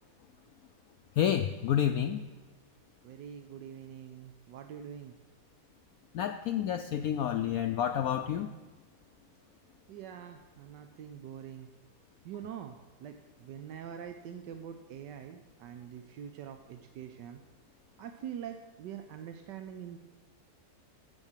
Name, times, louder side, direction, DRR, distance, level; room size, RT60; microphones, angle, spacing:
voice 1, 1.2-2.3 6.1-8.5, left 10 dB, 70° left, 7 dB, 0.9 m, -29 dB
voice 2, 3.0-5.1 9.9-11.7 12.2-17.4 18.0-20.0, right 9 dB, 80° right, 6 dB, 1.3 m, -44 dB
15.5 x 6.3 x 7.3 m, 1.3 s
omnidirectional pair, 1.9 m